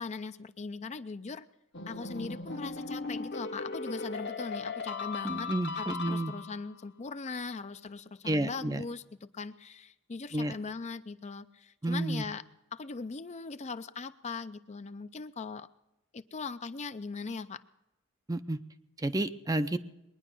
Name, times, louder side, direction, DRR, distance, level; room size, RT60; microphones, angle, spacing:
voice 1, 0.0-1.5 1.9-12.4 12.7-15.7 16.1-17.6, left 4 dB, 35° left, 12 dB, 0.5 m, -40 dB
sound 1, 1.7-6.7, left 4 dB, 55° left, 1.1 m, -37 dB
voice 2, 5.2-6.3 8.3-8.8 10.3-10.5 11.8-12.2 18.3-18.6 19.0-19.8, right 1 dB, 15° right, 11 dB, 0.5 m, -30 dB
21.0 x 10.0 x 6.1 m, 0.92 s
head